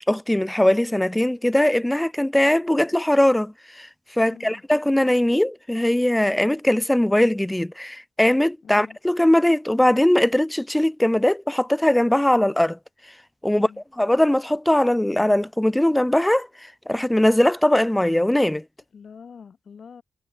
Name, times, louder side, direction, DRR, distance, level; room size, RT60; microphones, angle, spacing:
voice 1, 0.1-3.9 4.2-12.8 13.4-13.7 14.0-16.5 16.9-18.6, left 1 dB, 5° left, 0.4 m, -20 dB
voice 2, 4.2-4.6 8.6-9.0 13.4-13.8 18.9-20.0, left 6 dB, 60° left, 3.8 m, -44 dB
wide cardioid pair, 140°, 0 cm